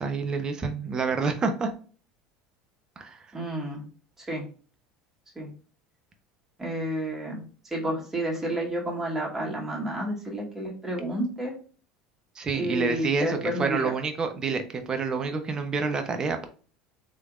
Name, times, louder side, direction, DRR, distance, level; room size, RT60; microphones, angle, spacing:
voice 1, 0.0-1.7 3.0-3.3 12.4-16.4, right 4 dB, 30° right, 7 dB, 0.7 m, -28 dB
voice 2, 3.3-3.8 4.3-4.4 5.3-5.5 6.6-7.4 7.7-11.5 12.5-13.9, right 1 dB, 15° right, -2 dB, 1.7 m, -30 dB
3.3 x 3.1 x 2.4 m, 0.39 s
hypercardioid pair, 80°, 2 cm